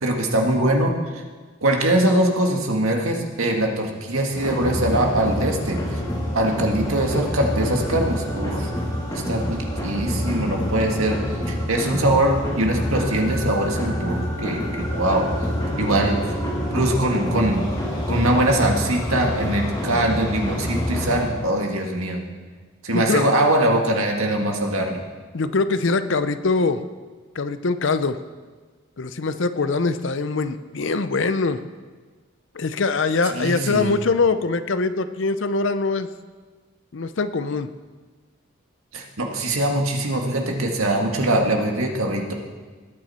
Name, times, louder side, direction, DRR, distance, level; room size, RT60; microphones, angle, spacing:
voice 1, 0.0-1.2 1.6-6.0 6.3-8.7 9.1-11.2 11.5-15.3 15.8-16.3 16.7-17.7 18.1-22.2 22.8-25.0 33.3-33.9 38.9-42.3, right 1 dB, 85° right, 1 dB, 1.9 m, -22 dB
sound 1, 4.3-21.3, equal, 20° left, 2.2 m, -27 dB
voice 2, 22.9-23.2 25.3-26.8 27.4-28.2 29.0-31.6 32.5-36.1 36.9-37.7, left 3 dB, 60° left, 12 dB, 0.6 m, -23 dB
19.5 x 9.0 x 4.3 m, 1.4 s
head